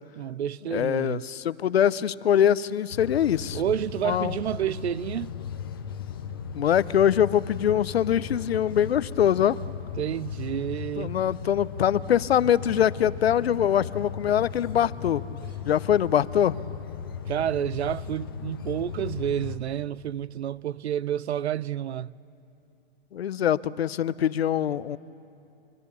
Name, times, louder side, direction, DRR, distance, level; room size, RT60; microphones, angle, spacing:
voice 1, 0.2-1.3 3.5-5.3 10.0-11.2 17.3-22.2, right 10 dB, 75° right, 0.6 m, -29 dB
voice 2, 0.7-3.6 4.0-4.4 6.5-9.6 11.0-15.2 15.6-16.6 23.1-25.0, left 9 dB, 65° left, 0.7 m, -23 dB
sound 1, 2.9-19.6, left 7 dB, 20° left, 0.7 m, -37 dB
26.5 x 24.0 x 7.0 m
hypercardioid pair, 180°, 33 cm